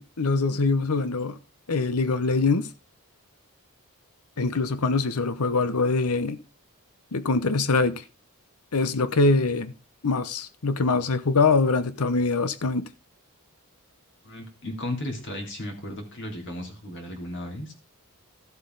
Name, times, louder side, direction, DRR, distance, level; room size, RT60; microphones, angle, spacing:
voice 1, 0.0-1.4 1.7-2.7 4.4-6.4 7.1-8.0 8.7-9.7 10.0-12.8, left 3 dB, 80° left, 0.9 m, -23 dB
voice 2, 14.2-17.7, left 1 dB, 55° left, 3.6 m, -35 dB
13.5 x 7.8 x 4.0 m
head